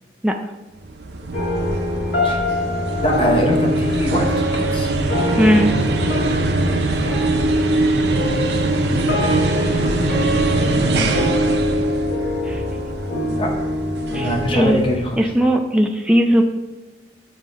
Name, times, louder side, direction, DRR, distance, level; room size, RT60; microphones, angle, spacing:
sound 1, 0.8-15.3, right 2 dB, 65° right, 0.6 m, -23 dB
sound 2, 1.3-14.6, left 1 dB, 75° left, 1.6 m, -24 dB
voice 1, 3.0-4.9 10.2-11.2 13.4-13.6 14.1-15.2, equal, 30° left, 1 dB, 0.8 m, -23 dB
voice 2, 5.4-5.8 12.4-12.6 14.1-14.8 15.2-16.4, equal, 5° right, 2 dB, 0.3 m, -17 dB
7.1 x 2.7 x 5.2 m, 1.1 s
head